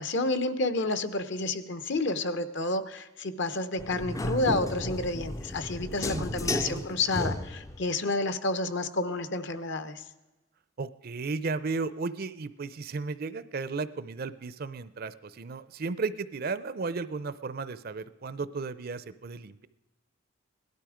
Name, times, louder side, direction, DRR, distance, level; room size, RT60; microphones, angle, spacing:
voice 1, 0.0-10.0, left 2 dB, 55° left, 12 dB, 0.9 m, -30 dB
sound 1, 3.8-7.9, left 2 dB, 15° left, 0.4 m, -33 dB
voice 2, 6.1-6.8 10.8-19.7, right 4 dB, 45° right, 15 dB, 0.5 m, -34 dB
17.5 x 12.0 x 5.0 m, 1.1 s
head